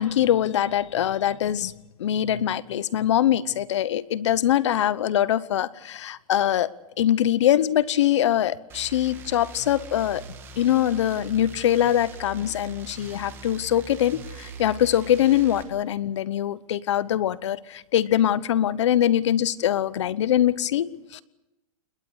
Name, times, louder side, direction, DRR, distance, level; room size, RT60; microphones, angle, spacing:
voice 1, 0.0-1.7 2.0-10.2 10.6-21.2, left 11 dB, 50° left, 18 dB, 1.0 m, -23 dB
sound 1, 8.7-15.6, right 4 dB, 10° right, 2.0 m, -42 dB
28.0 x 21.5 x 6.5 m, 0.95 s
hypercardioid pair, 175°, 19 cm